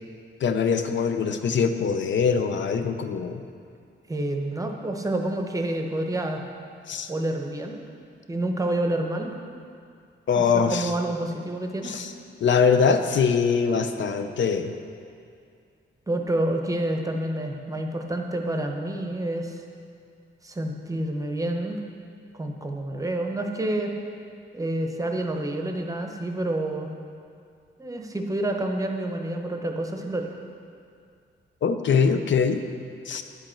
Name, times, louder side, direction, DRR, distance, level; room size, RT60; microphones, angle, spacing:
voice 1, 0.4-3.4 6.9-7.1 10.3-10.9 11.8-12.1 12.4-14.7 31.6-32.6 33.1-33.2, left 6 dB, 70° left, 8 dB, 0.6 m, -23 dB
voice 2, 4.1-6.4 7.1-7.8 8.3-9.3 10.4-12.0 16.1-19.6 20.4-21.8 22.4-23.9 24.5-26.9 27.8-30.3, right 1 dB, 15° right, 3 dB, 0.7 m, -28 dB
10.5 x 7.6 x 4.4 m, 2.3 s
wide cardioid pair, 155°, 20 cm